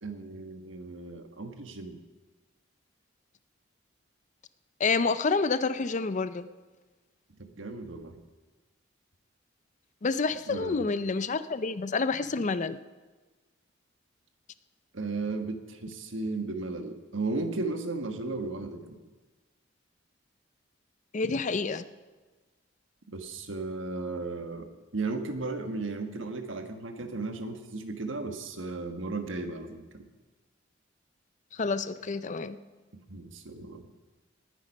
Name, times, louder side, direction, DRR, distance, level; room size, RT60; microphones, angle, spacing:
voice 1, 0.0-2.0 7.3-8.2 10.5-10.9 14.9-19.0 23.1-30.1 33.1-33.9, right 3 dB, 85° right, 6 dB, 1.4 m, -35 dB
voice 2, 4.8-6.5 10.0-12.8 21.1-21.8 31.5-32.6, left 4 dB, 40° left, 14 dB, 0.5 m, -28 dB
19.0 x 9.2 x 5.4 m, 1.3 s
head